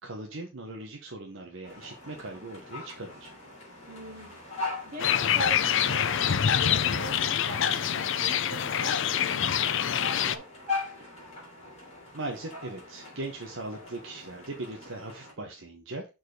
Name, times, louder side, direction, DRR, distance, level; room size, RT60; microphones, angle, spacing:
voice 1, 0.0-3.3 12.1-16.1, right 2 dB, 60° right, 1 dB, 1.0 m, -39 dB
sound 1, 1.6-15.3, left 3 dB, 30° left, 3.5 m, -41 dB
voice 2, 3.9-4.4 4.8-9.0 9.3-10.4 11.0-11.1, right 2 dB, 40° right, 0 dB, 2.3 m, -42 dB
sound 2, 5.0-10.4, left 8 dB, 60° left, 0.5 m, -26 dB
6.6 x 4.6 x 3.8 m, 0.28 s
head